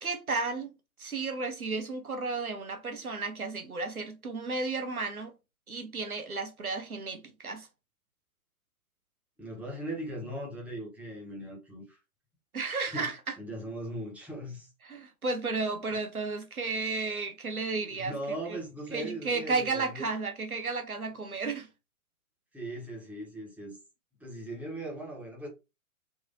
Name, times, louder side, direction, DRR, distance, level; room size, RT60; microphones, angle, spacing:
voice 1, 0.0-0.7 1.0-5.4 5.7-7.7 12.5-13.4 14.8-18.1 18.9-21.7, right 3 dB, 85° right, 0.9 m, -33 dB
voice 2, 9.4-12.0 12.8-13.1 13.4-14.7 15.9-16.0 17.7-20.1 22.5-23.8 24.2-25.5, right 1 dB, 5° right, 1.1 m, -39 dB
3.7 x 2.9 x 2.7 m
figure-of-eight pair, 110°, 42 cm